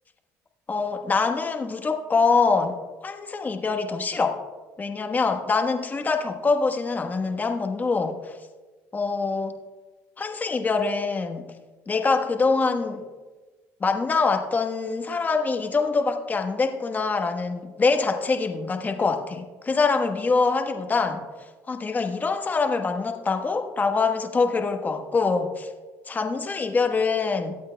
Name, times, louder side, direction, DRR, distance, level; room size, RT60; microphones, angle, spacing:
voice 1, 0.7-2.8 3.0-4.4 4.8-8.4 8.9-9.6 10.2-11.4 11.9-13.0 13.8-21.2 21.7-25.7 26.1-27.5, left 4 dB, 25° left, 5 dB, 1.2 m, -24 dB
23.0 x 8.6 x 2.3 m, 1.3 s
supercardioid pair, 90°, 6 cm